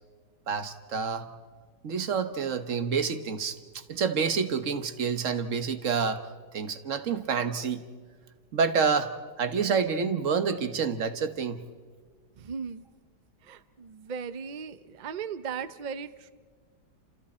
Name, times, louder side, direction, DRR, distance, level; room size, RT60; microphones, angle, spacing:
voice 1, 0.5-1.3 1.8-6.3 6.5-7.8 8.5-9.1 9.4-11.6, right 6 dB, 50° right, 10 dB, 1.3 m, -28 dB
voice 2, 12.4-12.8 13.4-16.3, right 6 dB, 70° right, 12 dB, 0.4 m, -37 dB
30.0 x 27.0 x 4.3 m, 1.5 s
omnidirectional pair, 1.8 m